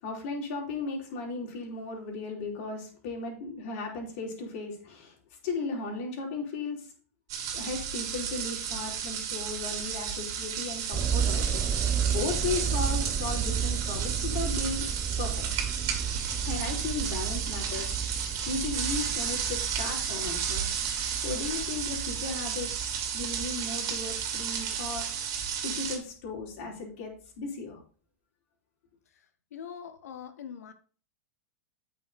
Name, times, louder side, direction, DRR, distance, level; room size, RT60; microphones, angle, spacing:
voice 1, 0.0-5.1 5.4-6.9 7.5-14.9 15.2-15.4 16.4-20.6 21.1-25.0 25.6-27.1 27.4-27.8, left 4 dB, 60° left, -1 dB, 4.7 m, -36 dB
sound 1, 7.3-26.0, right 7 dB, 45° right, 2.6 m, -33 dB
sound 2, 10.9-25.1 25.7-25.8, right 7 dB, 20° right, 0.5 m, -33 dB
voice 2, 29.5-30.7, left 8 dB, 80° left, 11 dB, 1.4 m, -42 dB
8.8 x 6.6 x 4.3 m, 0.41 s
hypercardioid pair, 115°, 8 cm